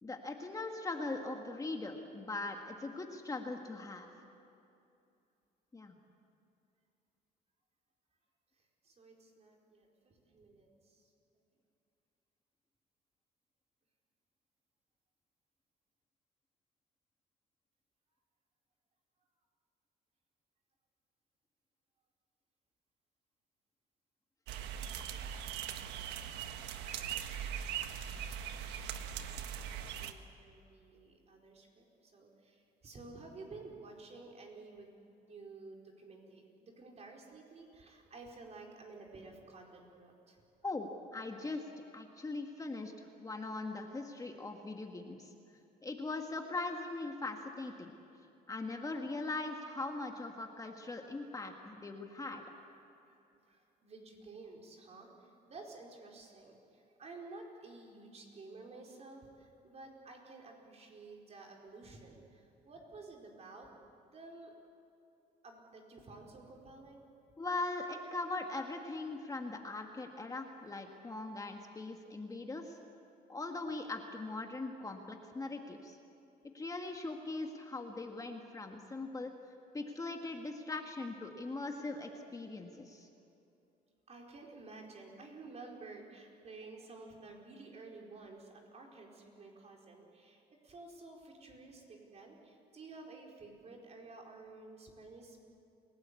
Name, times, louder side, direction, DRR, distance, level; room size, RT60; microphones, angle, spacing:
voice 1, 0.0-4.1 5.7-5.9 40.6-41.7 41.9-45.3 45.8-47.9 48.5-52.4 67.4-72.8 73.3-76.0 76.5-79.3 79.7-83.1, left 2 dB, 20° left, 3 dB, 1.8 m, -40 dB
voice 2, 8.8-11.1 29.3-40.4 53.0-63.7 64.1-64.5 65.4-67.1 84.1-95.4, right 3 dB, 40° right, 0 dB, 4.8 m, -52 dB
sound 1, 24.5-30.1, right 9 dB, 85° right, 1.4 m, -40 dB
28.5 x 17.5 x 8.4 m, 2.7 s
cardioid pair, 110°, 17 cm